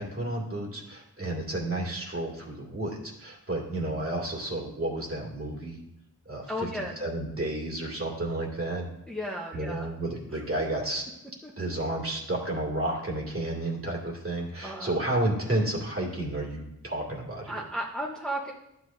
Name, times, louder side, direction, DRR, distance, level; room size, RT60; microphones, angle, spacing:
voice 1, 0.0-5.8 6.3-8.8 9.5-11.0 11.6-17.5, right 1 dB, 40° right, -2 dB, 2.4 m, -31 dB
voice 2, 6.5-6.9 9.1-9.9 10.3-10.4 11.4-11.5 14.6-14.9 17.5-18.5, equal, ahead, -2 dB, 1.0 m, -34 dB
11.5 x 8.0 x 2.7 m, 0.84 s
cardioid pair, 60°, 35 cm